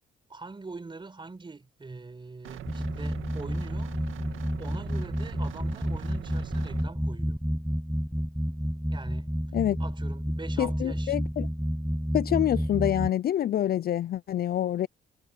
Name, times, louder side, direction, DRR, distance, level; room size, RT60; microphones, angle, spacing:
voice 1, 0.3-4.1 4.6-7.4 8.9-11.1, right 3 dB, 25° right, 5.3 m, -43 dB
sound 1, 2.4-6.8, right 12 dB, 80° right, 2.0 m, -43 dB
sound 2, 2.7-13.1, equal, ahead, 0.6 m, -30 dB
voice 2, 10.6-11.5 12.1-14.9, left 11 dB, 50° left, 0.4 m, -26 dB
cardioid pair, 90°, 20 cm